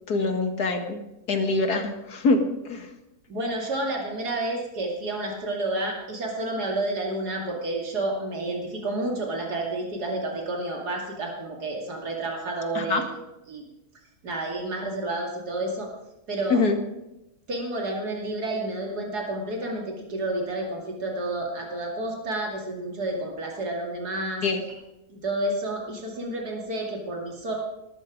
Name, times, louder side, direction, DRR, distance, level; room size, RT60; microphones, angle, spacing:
voice 1, 0.1-1.0 1.3-2.9 12.8-13.0 16.5-16.8 24.4-24.6, left 3 dB, 80° left, 6 dB, 2.4 m, -24 dB
voice 2, 3.3-13.0 13.5-13.6 14.2-15.9 16.3-16.6 17.5-24.4 25.1-27.5, right 2 dB, 90° right, 0 dB, 3.1 m, -30 dB
19.5 x 13.5 x 5.1 m, 0.93 s
omnidirectional pair, 1.6 m